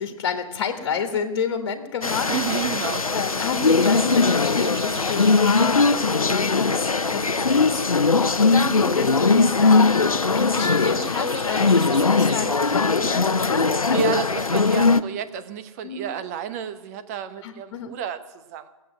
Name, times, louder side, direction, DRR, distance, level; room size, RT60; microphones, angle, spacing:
voice 1, 0.0-2.3 3.1-14.2 15.8-16.0 17.4-18.0, left 6 dB, 45° left, 6 dB, 1.7 m, -30 dB
sound 1, 2.0-15.0, left 4 dB, 85° left, 0.7 m, -20 dB
sound 2, 2.0-14.1, right 3 dB, 50° right, 2.7 m, -44 dB
voice 2, 2.3-3.0 13.9-18.7, right 9 dB, 30° right, 10 dB, 0.9 m, -31 dB
18.0 x 8.0 x 9.0 m, 1.2 s
figure-of-eight pair, 130°, 18 cm